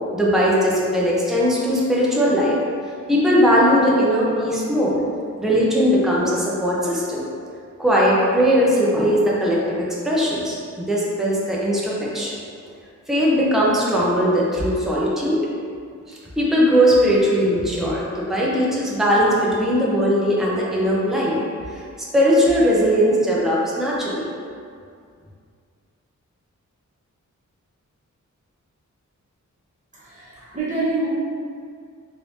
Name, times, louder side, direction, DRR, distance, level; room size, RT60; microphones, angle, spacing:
voice 1, 0.1-2.6 3.1-5.0 5.4-7.2 7.8-12.4 13.1-15.4 16.1-21.4 22.1-24.3, equal, ahead, -6 dB, 0.6 m, -19 dB
voice 2, 29.9-31.1, right 2 dB, 25° right, -11 dB, 1.1 m, -26 dB
3.2 x 3.1 x 2.7 m, 2.2 s
wide cardioid pair, 115°, 30 cm